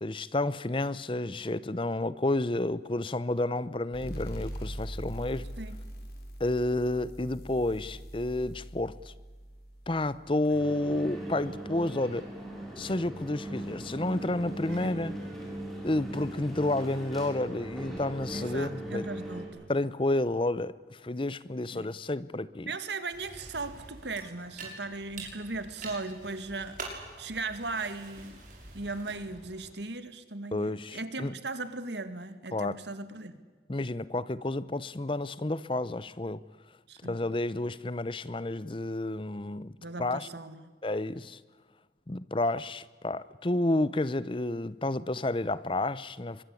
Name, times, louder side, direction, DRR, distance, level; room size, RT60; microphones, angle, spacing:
voice 1, 0.0-5.5 6.4-9.1 9.9-12.3 12.8-15.1 15.8-19.1 19.7-22.7 30.5-31.3 32.5-32.8 33.7-36.4 37.0-39.7 40.0-40.3 40.8-41.4 42.1-46.4, left 2 dB, 30° left, 17 dB, 0.7 m, -30 dB
sound 1, 3.9-11.2, right 1 dB, 60° left, 6.6 m, -42 dB
sound 2, 10.5-19.5, right 1 dB, ahead, 7.0 m, -39 dB
voice 2, 14.7-15.1 18.3-19.7 21.7-21.9 22.7-26.8 27.2-28.4 28.7-33.4 36.9-37.2 39.8-40.7, right 3 dB, 75° right, 11 dB, 2.2 m, -38 dB
sound 3, 23.1-29.7, right 3 dB, 45° right, 6.4 m, -46 dB
24.0 x 22.0 x 8.5 m, 1.4 s
head